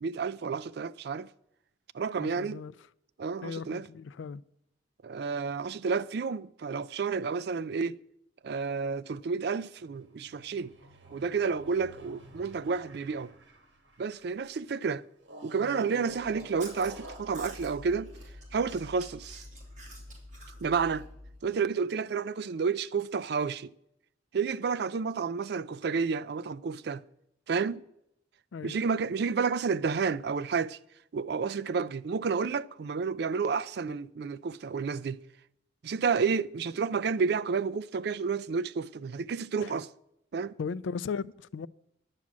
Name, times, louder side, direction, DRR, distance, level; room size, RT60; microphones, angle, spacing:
voice 1, 0.0-1.3 1.9-2.6 3.2-3.8 5.0-8.0 8.4-10.7 11.1-13.3 14.0-15.0 15.4-18.1 18.5-19.4 20.6-21.1 21.4-23.7 24.3-27.0 27.5-27.8 28.6-30.8 31.1-35.2 35.8-39.9 40.3-40.5, right 5 dB, 60° right, 0.4 m, -30 dB
voice 2, 2.2-2.7 3.4-4.4 28.5-28.8 39.6-39.7 40.6-41.7, left 5 dB, 90° left, 0.4 m, -37 dB
sound 1, 9.8-14.4 15.2-18.8, right 1 dB, 75° right, 1.8 m, -50 dB
Chewing mastication, 16.1-21.4, equal, 40° right, 2.6 m, -47 dB
10.5 x 6.2 x 8.4 m
head